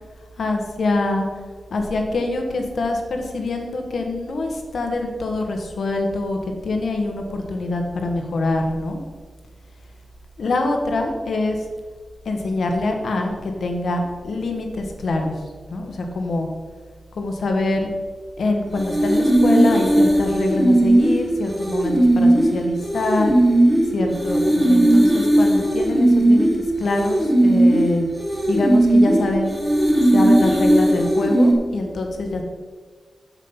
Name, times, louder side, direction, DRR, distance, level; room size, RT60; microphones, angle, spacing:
voice 1, 0.4-1.3 1.7-6.4 6.6-9.0 10.4-11.6 12.2-15.3 15.7-16.5 17.2-17.9 18.4-23.3 23.9-26.5 26.8-28.0 28.5-29.5 30.1-32.4, left 2 dB, 65° left, 3 dB, 1.5 m, -24 dB
sound 1, 18.8-31.5, right 1 dB, 15° right, 1.6 m, -17 dB
7.6 x 7.5 x 5.6 m, 1.5 s
wide cardioid pair, 180°, 0 cm